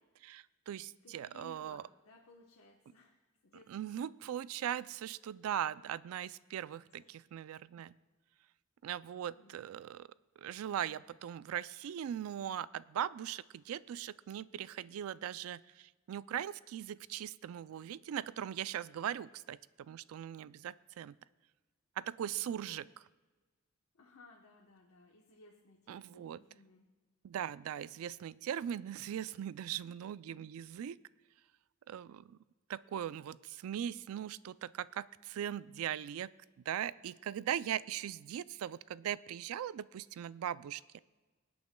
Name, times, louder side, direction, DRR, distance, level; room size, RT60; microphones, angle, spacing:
voice 1, 0.2-1.8 3.7-7.9 8.8-10.1 10.4-21.2 22.0-22.9 25.9-26.4 27.2-31.0 31.9-32.4 32.7-36.3 36.7-40.8, right 10 dB, 80° right, 19 dB, 0.3 m, -40 dB
voice 2, 1.0-4.0 6.9-7.1 9.2-9.6 22.3-22.5 22.8-22.9 23.9-26.9, left 3 dB, 85° left, 0 dB, 1.0 m, -61 dB
24.5 x 8.7 x 2.2 m, 1.3 s
head